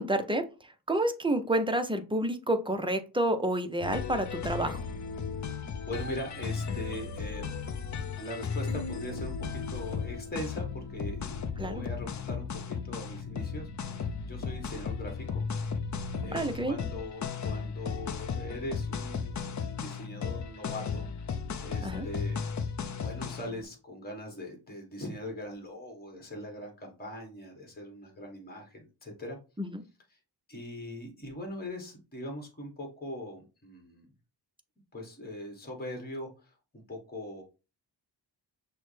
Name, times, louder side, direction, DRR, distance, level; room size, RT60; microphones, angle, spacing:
voice 1, 0.0-4.8 11.6-11.8 16.3-16.8 21.8-22.1 29.6-29.8, right 1 dB, 10° right, 7 dB, 0.5 m, -29 dB
sound 1, 3.8-23.6, left 6 dB, 45° left, 0.5 m, -35 dB
voice 2, 5.4-7.6 8.0-15.4 16.2-21.1 21.6-22.4 23.0-29.4 30.5-34.1 34.9-37.4, left 1 dB, 20° left, 3 dB, 1.2 m, -41 dB
6.1 x 2.1 x 3.2 m, 0.31 s
wide cardioid pair, 100°, 43 cm